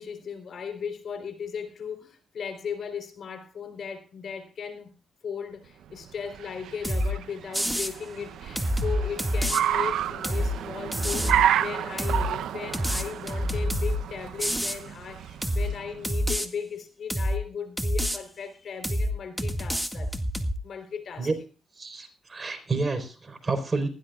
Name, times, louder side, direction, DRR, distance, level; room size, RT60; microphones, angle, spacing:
voice 1, 0.0-4.9 5.2-20.1 20.6-21.3, left 6 dB, 65° left, 7 dB, 3.7 m, -37 dB
Car, 6.0-16.2, right 10 dB, 85° right, 0.8 m, -30 dB
sound 1, 6.8-7.1 7.5-7.9 8.6-9.6 10.2-10.5 10.9-11.4 12.0-12.3 12.7-14.0 14.4-14.8 15.4-15.7 16.0-16.5 17.1-17.4 17.8-18.2 18.8-19.1 19.4-20.5, equal, 5° right, 2.0 m, -27 dB
voice 2, 21.8-23.9, right 3 dB, 35° right, 7 dB, 4.3 m, -29 dB
20.0 x 15.5 x 2.4 m, 0.35 s
cardioid pair, 70°, 0 cm